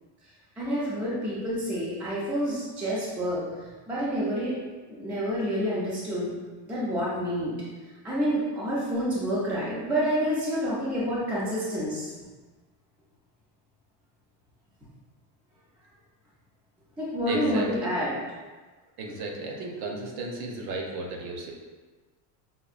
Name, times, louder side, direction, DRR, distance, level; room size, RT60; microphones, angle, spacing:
voice 1, 0.6-3.5 3.9-4.6 4.9-6.4 6.7-7.5 8.0-12.1 17.0-18.2, equal, 5° right, -8 dB, 0.3 m, -28 dB
voice 2, 17.3-17.9 19.0-21.5, right 2 dB, 50° right, 1 dB, 0.7 m, -34 dB
5.5 x 2.5 x 2.4 m, 1.3 s
cardioid pair, 155°, 48 cm